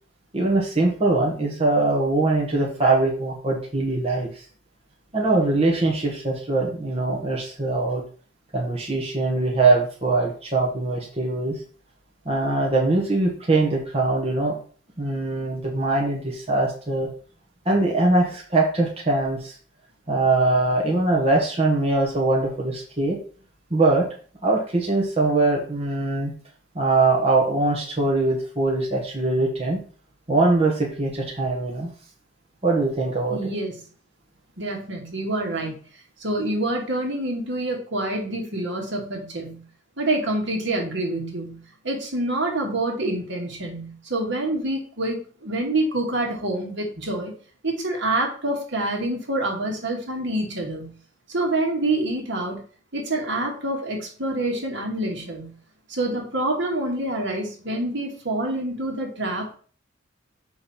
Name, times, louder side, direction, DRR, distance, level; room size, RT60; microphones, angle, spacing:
voice 1, 0.3-4.3 5.1-8.0 8.5-11.6 12.2-14.5 15.0-17.1 17.6-19.5 20.1-23.2 23.7-24.0 24.4-26.3 26.7-29.8 30.3-31.9 32.6-33.4, right 2 dB, 30° right, -2 dB, 1.5 m, -22 dB
voice 2, 33.3-33.8 34.6-35.7 36.2-39.6 40.0-47.3 47.6-50.9 51.3-52.6 52.9-55.5 55.9-59.6, right 1 dB, 65° right, 0 dB, 2.1 m, -27 dB
6.8 x 5.4 x 4.4 m, 0.42 s
head